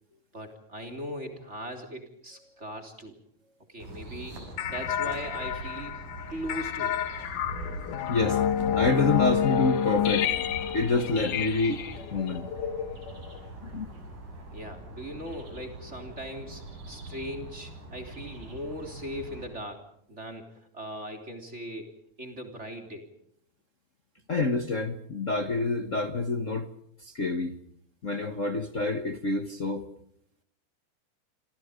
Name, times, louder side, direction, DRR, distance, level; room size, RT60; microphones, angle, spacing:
voice 1, 0.3-3.2 3.7-4.4 4.7-7.0 14.5-23.1, equal, 20° right, 8 dB, 3.7 m, -39 dB
sound 1, 3.8-19.5, right 1 dB, 80° right, 8.3 m, -43 dB
sound 2, 4.6-13.5, left 9 dB, 80° left, 3.0 m, -29 dB
voice 2, 8.1-8.4 8.7-10.3 10.7-11.8 12.1-12.5 13.6-13.9 24.3-26.7 27.0-27.6 28.0-29.8, left 3 dB, 50° left, 8 dB, 0.9 m, -27 dB
28.0 x 26.5 x 5.2 m, 0.69 s
omnidirectional pair, 3.6 m